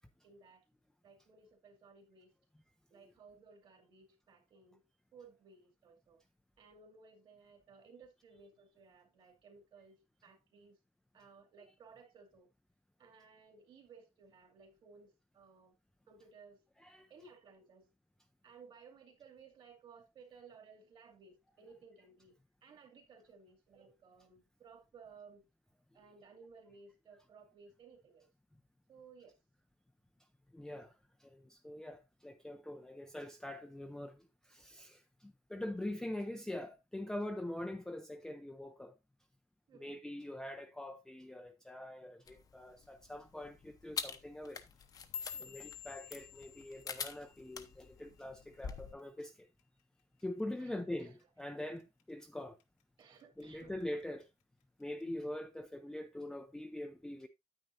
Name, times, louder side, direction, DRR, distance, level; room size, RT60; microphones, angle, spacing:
voice 1, 0.2-0.6 1.0-2.3 2.9-4.8 5.1-6.2 6.6-10.8 11.1-12.5 13.0-15.8 16.1-16.6 17.1-17.9 18.4-25.5 25.9-28.3 28.9-29.4 39.7-40.0 45.3-45.6 50.6-50.7 51.0-51.1 53.0-53.7, right 5 dB, 45° right, 2.3 m, -59 dB
voice 2, 30.5-30.9 31.2-38.9 39.7-44.6 45.4-49.5 50.2-52.6 53.4-54.3 54.8-57.3, left 1 dB, 5° left, 0.5 m, -43 dB
sound 1, 42.3-48.9, left 6 dB, 30° left, 0.8 m, -47 dB
sound 2, 44.7-49.1 49.4-49.8 50.2-50.6 51.0-51.2 51.8-52.2 52.6-53.4 53.8-54.2 55.0-55.1, left 9 dB, 80° left, 1.5 m, -50 dB
9.4 x 9.2 x 2.6 m
cardioid pair, 165°, 12 cm